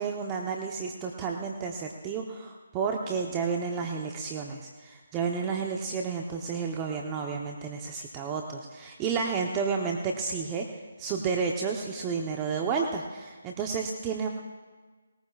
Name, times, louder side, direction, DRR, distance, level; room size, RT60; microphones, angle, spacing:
voice 1, 0.0-14.3, right 5 dB, 20° right, 2 dB, 0.9 m, -31 dB
20.0 x 19.5 x 2.5 m, 1.4 s
figure-of-eight pair, 155°, 0 cm